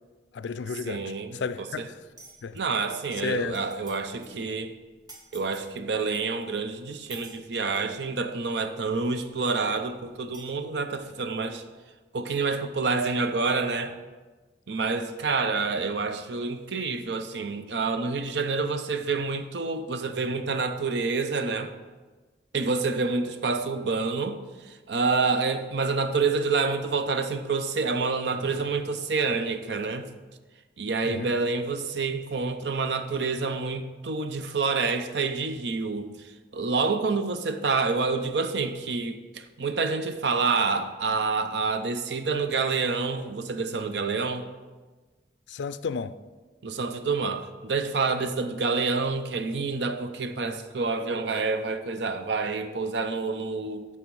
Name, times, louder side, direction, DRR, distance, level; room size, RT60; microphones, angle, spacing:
voice 1, 0.3-2.0 2.4-2.6 3.2-3.6 31.0-31.3 45.5-46.1, left 5 dB, 80° left, 14 dB, 0.4 m, -32 dB
voice 2, 0.9-1.9 2.5-4.7 5.3-11.6 12.1-14.0 14.7-21.7 22.5-24.4 24.7-30.1 30.8-44.5 46.6-53.9, right 4 dB, 75° right, 9 dB, 0.6 m, -28 dB
sound 1, 2.2-2.6 3.2-3.3 3.4-4.0 4.2-4.4 5.1-5.7 6.4-6.5 7.1-7.9 8.8-8.9 9.5-9.6 10.3-10.5, right 2 dB, 20° right, 1.2 m, -49 dB
9.1 x 6.0 x 4.7 m, 1.3 s
head